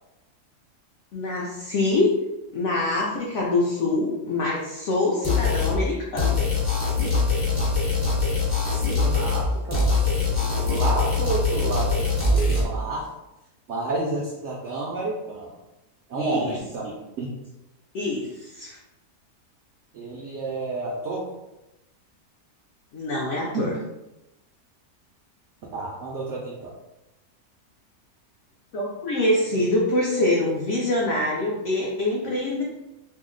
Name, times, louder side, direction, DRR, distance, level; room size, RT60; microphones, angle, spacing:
voice 1, 1.1-2.1 2.5-6.4 16.1-16.5 17.9-18.8 22.9-23.7 28.7-32.6, left 2 dB, 65° left, -4 dB, 0.8 m, -25 dB
sound 1, 5.2-5.8 6.2-9.5 9.7-12.6, left 3 dB, 30° left, 0.7 m, -23 dB
voice 2, 8.7-12.0 12.3-13.1 13.7-15.6 16.1-16.9 17.2-17.3 19.9-21.3 23.5-23.7 25.7-26.7, right 3 dB, 70° right, -2 dB, 0.7 m, -30 dB
2.7 x 2.0 x 3.7 m, 0.95 s
omnidirectional pair, 1.7 m